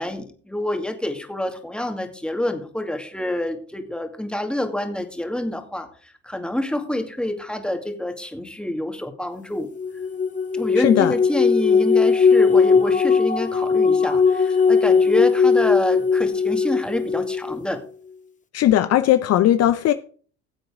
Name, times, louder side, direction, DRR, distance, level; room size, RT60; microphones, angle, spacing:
voice 1, 0.0-9.7 10.5-17.8, left 1 dB, 5° left, 2.4 m, -27 dB
sound 1, 9.7-17.6, left 5 dB, 25° left, 1.1 m, -18 dB
voice 2, 10.8-11.1 18.5-19.9, left 12 dB, 50° left, 0.7 m, -18 dB
16.0 x 7.8 x 3.7 m
hypercardioid pair, 75°, 33 cm